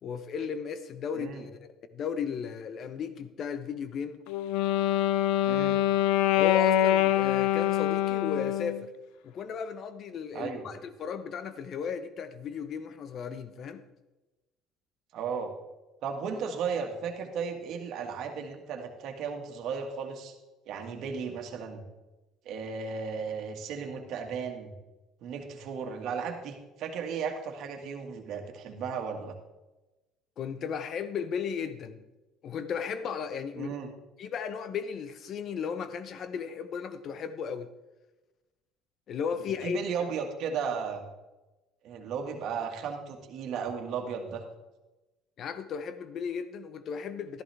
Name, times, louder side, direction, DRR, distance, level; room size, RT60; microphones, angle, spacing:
voice 1, 0.0-4.2 6.3-8.9 9.2-13.8 30.4-32.0 32.4-33.7 34.2-37.7 39.1-39.8 45.4-47.4, left 6 dB, 50° left, 0.9 m, -35 dB
voice 2, 1.1-1.5 5.4-5.8 10.3-10.7 15.1-15.5 16.0-20.3 20.7-21.8 22.5-24.7 25.2-29.3 33.6-33.9 39.6-41.1 41.8-44.4, right 6 dB, 65° right, 1.8 m, -35 dB
Wind instrument woodwind instrument, 4.3-8.8, left 12 dB, 80° left, 0.5 m, -25 dB
13.0 x 11.0 x 3.5 m
supercardioid pair, 100°, 0 cm